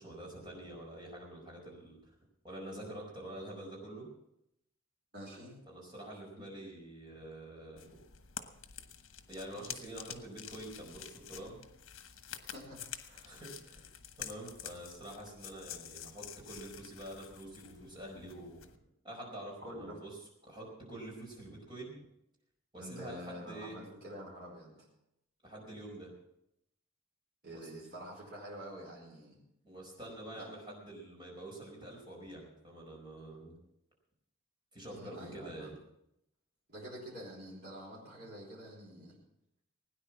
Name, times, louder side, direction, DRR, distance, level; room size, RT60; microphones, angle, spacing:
voice 1, 0.0-2.0 2.4-4.1 5.7-7.9 9.3-11.7 13.2-13.9 14.2-20.1 20.4-22.0 22.7-23.8 25.4-26.1 27.5-27.7 29.6-33.6 34.7-35.7, right 1 dB, 20° right, -2 dB, 4.8 m, -47 dB
voice 2, 5.1-5.5 12.5-13.4 19.6-20.0 22.8-24.8 27.4-29.4 30.4-30.5 34.9-35.7 36.7-39.2, equal, 50° right, -5 dB, 4.6 m, -47 dB
sound 1, 7.8-18.8, left 9 dB, 75° left, 1.1 m, -48 dB
17.5 x 9.8 x 5.9 m, 0.80 s
head